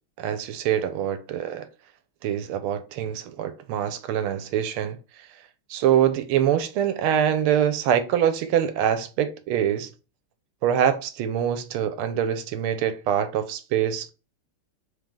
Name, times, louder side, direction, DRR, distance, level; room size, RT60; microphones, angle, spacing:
voice 1, 0.2-1.7 2.2-5.0 5.7-9.9 10.6-14.1, right 9 dB, 80° right, 1.5 m, -24 dB
3.7 x 3.2 x 3.6 m
omnidirectional pair, 2.3 m